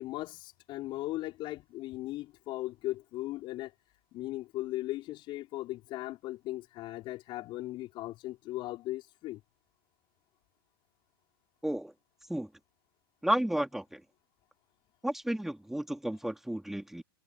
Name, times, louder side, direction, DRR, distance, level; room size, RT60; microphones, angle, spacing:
voice 1, 0.0-3.7 4.1-9.4, left 17 dB, 40° left, 4.4 m, -38 dB
voice 2, 13.2-14.0 15.0-17.0, right 1 dB, 5° right, 3.3 m, -32 dB
hypercardioid pair, 105°, 12 cm